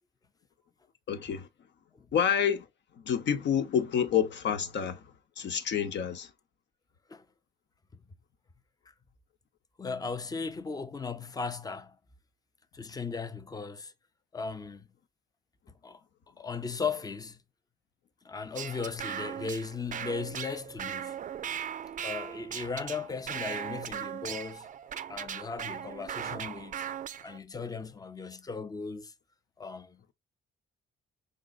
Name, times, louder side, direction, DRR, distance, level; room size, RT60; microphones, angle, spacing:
voice 1, 1.1-1.5 2.1-2.6 3.0-5.0 5.4-6.3, left 8 dB, 65° left, 0.8 m, -28 dB
voice 2, 9.8-12.0 12.7-13.9 14.3-14.9 15.8-16.0 16.4-17.4 18.2-21.2 22.0-24.7 25.1-26.8 27.2-29.1 29.6-30.1, left 5 dB, 20° left, 0.5 m, -37 dB
sound 1, 18.6-27.4, right 9 dB, 40° right, 0.4 m, -38 dB
5.2 x 3.7 x 2.3 m
cardioid pair, 90°, 20 cm